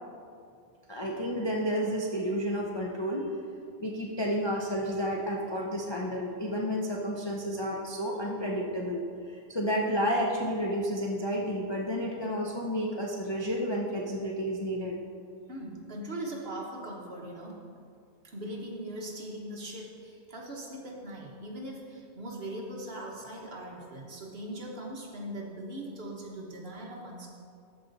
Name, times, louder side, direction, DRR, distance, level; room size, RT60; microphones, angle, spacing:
voice 1, 0.9-3.2 3.8-15.0, equal, 30° left, -2 dB, 0.5 m, -31 dB
voice 2, 15.5-17.5 18.2-27.3, right 1 dB, 45° right, -2 dB, 1.4 m, -40 dB
13.0 x 5.0 x 4.0 m, 2.3 s
omnidirectional pair, 1.5 m